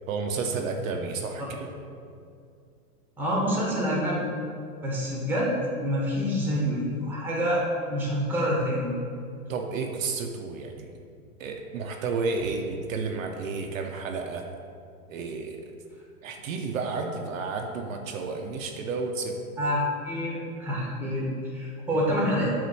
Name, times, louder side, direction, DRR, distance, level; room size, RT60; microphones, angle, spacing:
voice 1, 0.1-1.7 9.5-11.0 11.4-14.5 15.1-15.7 16.2-19.4, right 4 dB, 60° right, 3 dB, 0.9 m, -31 dB
voice 2, 3.2-4.2 4.8-5.5 5.8-8.9 19.6-22.5, equal, 5° right, -4 dB, 1.3 m, -27 dB
8.4 x 3.7 x 6.1 m, 2.3 s
hypercardioid pair, 150°, 45 cm